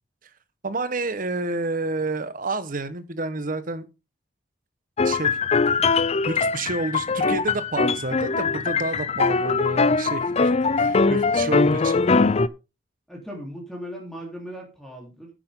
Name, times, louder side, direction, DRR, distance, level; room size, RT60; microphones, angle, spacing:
voice 1, 0.6-3.9 5.0-5.4 6.3-12.0, right 2 dB, 50° right, 1.2 m, -29 dB
sound 1, 5.0-12.5, left 4 dB, 35° left, 0.5 m, -21 dB
voice 2, 13.1-15.3, equal, ahead, 3.5 m, -38 dB
9.9 x 8.8 x 3.8 m
head